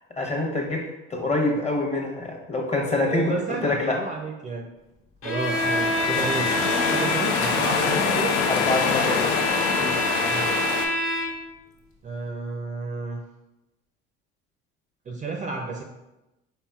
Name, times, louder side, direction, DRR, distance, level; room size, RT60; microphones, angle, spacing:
voice 1, 0.1-4.0 8.5-10.0, left 2 dB, 20° left, 2 dB, 0.9 m, -26 dB
voice 2, 2.9-4.7 5.2-6.6 6.9-8.4 10.2-10.7 12.0-13.2 15.1-15.8, right 3 dB, 25° right, 2 dB, 0.4 m, -31 dB
Bowed string instrument, 5.2-11.5, left 1 dB, 55° left, 1.3 m, -27 dB
sound 1, 5.4-10.9, left 5 dB, 85° left, 0.5 m, -25 dB
4.1 x 3.6 x 2.3 m, 0.99 s
hypercardioid pair, 75°, 30 cm